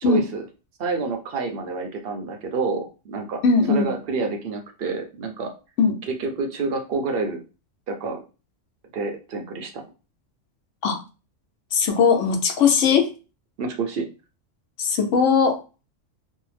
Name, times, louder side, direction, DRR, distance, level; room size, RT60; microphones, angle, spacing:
voice 1, 0.0-0.4 0.8-3.4 3.7-5.5 6.2-7.4 7.9-8.2 8.9-9.8 13.6-14.1, right 4 dB, 60° right, 4 dB, 0.7 m, -28 dB
voice 2, 3.4-3.9 5.8-5.9 10.8-11.0 11.7-13.1 14.8-15.6, left 5 dB, 70° left, 5 dB, 0.9 m, -19 dB
2.6 x 2.0 x 3.1 m, 0.32 s
omnidirectional pair, 1.3 m